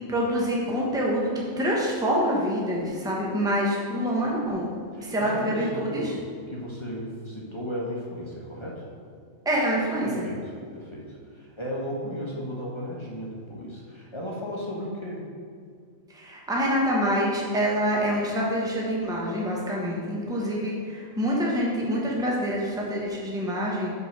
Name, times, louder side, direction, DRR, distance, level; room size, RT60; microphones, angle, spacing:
voice 1, 0.1-4.7 5.0-6.1 9.4-10.3 16.1-23.9, equal, 5° right, -3 dB, 1.1 m, -26 dB
voice 2, 4.9-6.2 6.5-8.9 10.0-15.2, equal, 20° left, -3 dB, 1.3 m, -35 dB
5.8 x 5.3 x 6.1 m, 2.2 s
omnidirectional pair, 1.4 m